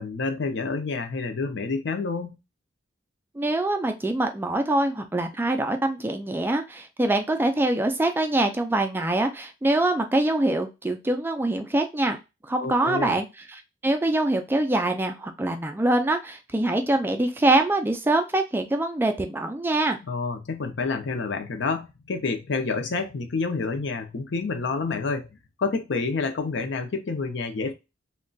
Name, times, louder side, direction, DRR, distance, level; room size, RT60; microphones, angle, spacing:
voice 1, 0.0-2.4 12.6-13.2 20.0-25.3 25.6-27.7, left 4 dB, 70° left, 0.6 m, -28 dB
voice 2, 3.4-12.2 12.5-13.3 13.5-20.0, right 2 dB, 10° right, 0.3 m, -24 dB
3.8 x 2.2 x 2.3 m
head